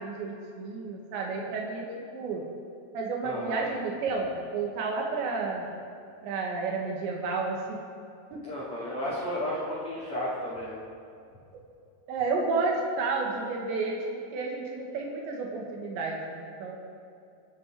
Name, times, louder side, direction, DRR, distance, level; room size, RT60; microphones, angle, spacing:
voice 1, 0.0-1.9 2.1-2.4 2.9-5.7 6.2-7.8 8.3-8.4 12.1-14.1 14.3-16.8, right 4 dB, 85° right, -1 dB, 3.9 m, -31 dB
voice 2, 3.2-3.6 8.4-10.8, left 1 dB, 40° left, -9 dB, 3.6 m, -33 dB
28.5 x 9.5 x 4.6 m, 2.5 s
omnidirectional pair, 5.1 m